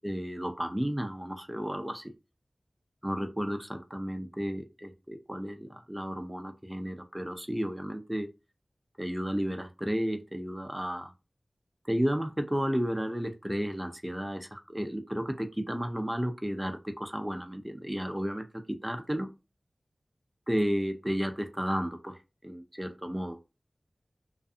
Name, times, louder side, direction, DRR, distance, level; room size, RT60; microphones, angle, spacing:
voice 1, 0.0-2.1 3.0-8.3 9.0-11.1 11.9-19.3 20.5-22.2 22.4-23.4, equal, 10° right, 0.5 m, -33 dB
2.5 x 2.4 x 2.4 m
wide cardioid pair, 65°, 0 cm